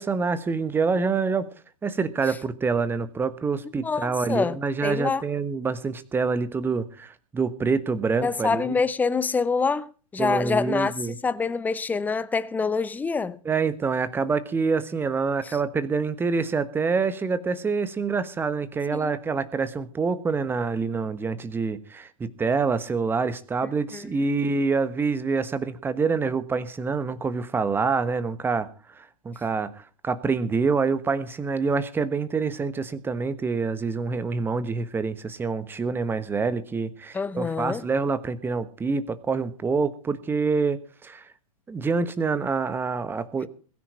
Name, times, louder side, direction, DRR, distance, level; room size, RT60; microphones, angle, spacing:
voice 1, 0.0-1.5 1.8-8.7 10.2-11.2 13.4-28.7 28.9-41.2 41.7-43.5, right 4 dB, 10° right, 1.3 m, -26 dB
voice 2, 3.8-4.6 4.8-5.2 8.2-13.4 15.4-15.5 18.9-19.1 23.9-24.1 37.1-37.8, left 4 dB, 10° left, 0.8 m, -26 dB
21.5 x 10.0 x 4.3 m
figure-of-eight pair, 105°, 19 cm